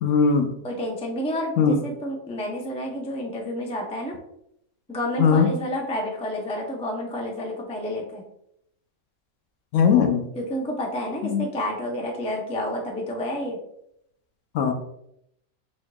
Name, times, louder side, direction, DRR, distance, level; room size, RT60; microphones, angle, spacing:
voice 1, 0.0-0.5 1.6-1.8 5.2-5.5 9.7-10.3 11.2-11.4 14.5-14.7, left 6 dB, 70° left, 5 dB, 0.9 m, -19 dB
voice 2, 0.6-4.1 4.9-8.2 10.4-13.6, equal, 10° left, -1 dB, 0.4 m, -30 dB
4.6 x 4.4 x 2.3 m, 0.76 s
omnidirectional pair, 1.5 m